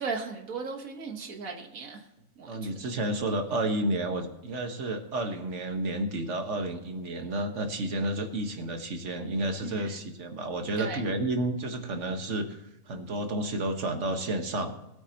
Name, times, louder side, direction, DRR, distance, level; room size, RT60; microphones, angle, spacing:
voice 1, 0.0-2.1 2.4-3.0 9.6-10.0 10.8-11.0, right 4 dB, 85° right, 3 dB, 1.8 m, -37 dB
voice 2, 2.5-14.7, right 1 dB, 60° right, 5 dB, 1.7 m, -31 dB
19.5 x 8.8 x 2.9 m, 0.91 s
omnidirectional pair, 1.4 m